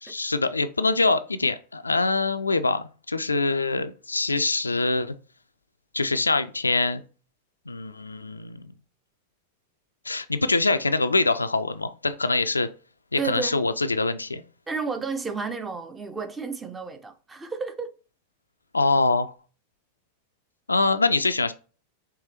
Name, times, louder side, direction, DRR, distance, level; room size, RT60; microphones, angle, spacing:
voice 1, 0.0-5.1 5.9-7.0 7.7-8.6 10.1-12.7 13.1-14.4 18.7-19.3 20.7-21.5, left 3 dB, 80° left, 0.3 m, -24 dB
voice 2, 13.2-13.6 14.7-17.9, right 5 dB, 15° right, 0.6 m, -31 dB
4.8 x 3.2 x 2.9 m
figure-of-eight pair, 90°, 0 cm